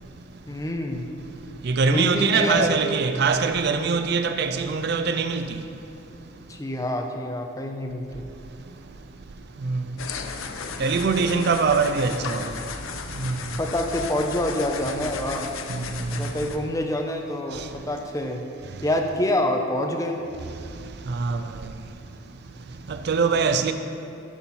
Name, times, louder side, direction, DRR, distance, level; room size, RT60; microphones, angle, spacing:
voice 1, 0.5-1.1 1.9-2.7 6.5-8.2 13.6-15.5 16.1-18.4 18.8-20.2, left 1 dB, 15° left, 0.6 m, -26 dB
voice 2, 1.6-5.5 9.6-9.8 10.8-12.5 13.2-13.4 15.7-15.8 21.1-21.4 22.9-23.7, right 5 dB, 55° right, 0.4 m, -23 dB
sound 1, 10.0-16.6, left 5 dB, 85° left, 0.6 m, -35 dB
11.0 x 4.4 x 5.5 m
head